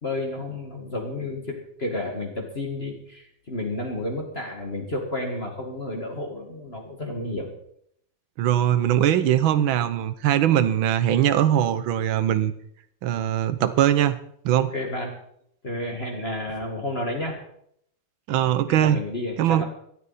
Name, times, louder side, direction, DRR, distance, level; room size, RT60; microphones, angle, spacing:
voice 1, 0.0-7.5 14.7-15.1 15.6-17.4 18.4-19.6, left 1 dB, 30° left, 0 dB, 2.2 m, -31 dB
voice 2, 8.4-12.5 13.0-14.2 14.5-14.7 18.3-19.0 19.4-19.6, right 11 dB, 85° right, 13 dB, 1.7 m, -21 dB
18.0 x 12.5 x 4.2 m, 0.69 s
omnidirectional pair, 2.1 m